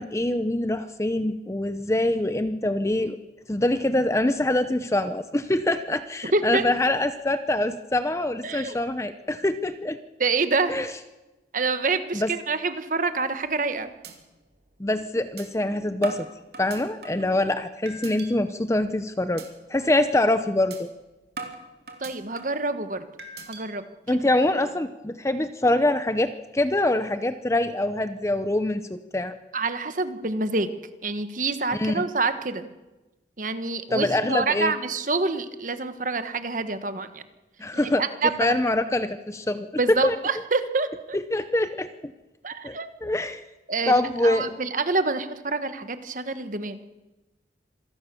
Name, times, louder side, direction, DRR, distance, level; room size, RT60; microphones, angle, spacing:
voice 1, 0.0-3.2 3.5-10.0 10.7-10.9 12.1-12.3 14.8-16.3 16.6-19.4 19.7-20.9 24.1-29.3 31.7-32.0 33.9-34.7 37.6-38.0 38.4-40.2 41.1-42.1 42.6-42.8 43.0-43.4 43.9-44.6, left 1 dB, 15° left, 10 dB, 0.7 m, -24 dB
voice 2, 6.3-6.7 8.4-8.8 10.2-10.7 11.5-13.9 22.0-23.1 23.5-23.8 24.1-24.2 29.5-30.7 31.0-32.7 33.4-37.2 37.8-38.5 39.8-41.2 42.4-42.9 43.7-46.8, right 3 dB, 45° right, 10 dB, 1.4 m, -27 dB
sound 1, 13.4-13.7 14.0-14.1 14.6-14.7 15.4-15.5 16.0-17.3 17.9-18.3 18.7-19.0 19.4-19.5 19.9-20.1 20.7-20.8 21.4-22.6 23.2-23.6, right 3 dB, 65° right, 3.2 m, -39 dB
26.5 x 17.0 x 7.0 m, 1.1 s
head